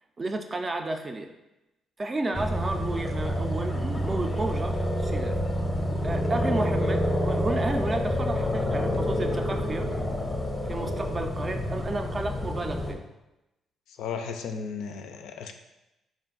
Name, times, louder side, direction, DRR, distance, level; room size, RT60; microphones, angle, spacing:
voice 1, 0.2-1.3 2.0-5.4 6.0-9.9 10.7-13.0, right 2 dB, 30° right, 5 dB, 0.4 m, -32 dB
sound 1, 2.3-12.9, left 1 dB, 15° left, 0.6 m, -28 dB
voice 2, 14.0-15.5, left 6 dB, 85° left, 6 dB, 0.4 m, -35 dB
3.5 x 2.4 x 3.9 m, 0.95 s
cardioid pair, 90°, 0 cm